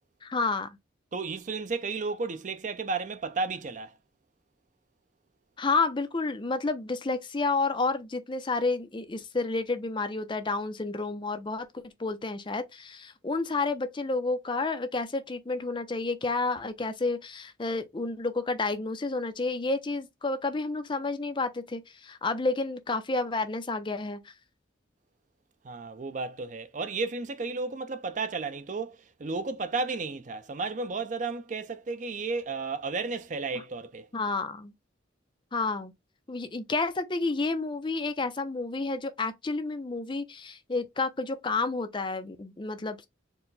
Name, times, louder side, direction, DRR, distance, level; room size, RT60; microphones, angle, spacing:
voice 1, 0.2-0.7 5.6-24.2 34.1-34.7 35.5-35.9 36.3-43.0, left 3 dB, 25° left, 0.5 m, -30 dB
voice 2, 1.1-3.9 25.6-34.1, right 4 dB, 40° right, 0.5 m, -33 dB
4.5 x 2.1 x 3.9 m
head